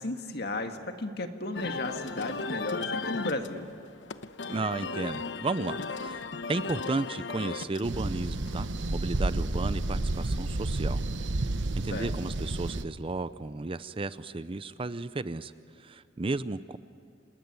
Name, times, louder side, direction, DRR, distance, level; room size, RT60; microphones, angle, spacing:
voice 1, 0.0-3.7 11.9-12.1, left 2 dB, 60° left, 6 dB, 1.9 m, -34 dB
sound 1, 1.5-10.9, left 4 dB, 90° left, 1.0 m, -38 dB
voice 2, 4.5-11.0 11.8-15.5 15.8-16.8, right 3 dB, 30° right, 14 dB, 0.6 m, -33 dB
sound 2, 7.8-12.8, right 2 dB, 85° right, 1.0 m, -30 dB
27.5 x 20.0 x 9.7 m, 2.3 s
head